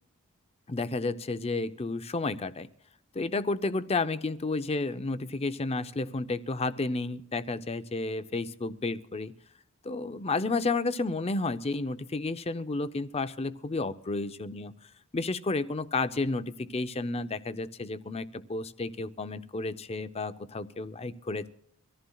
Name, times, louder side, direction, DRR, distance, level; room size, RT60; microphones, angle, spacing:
voice 1, 0.7-2.7 3.1-9.3 9.8-14.7 15.1-21.5, left 3 dB, 25° left, 12 dB, 0.6 m, -31 dB
24.5 x 14.5 x 2.3 m, 0.72 s
head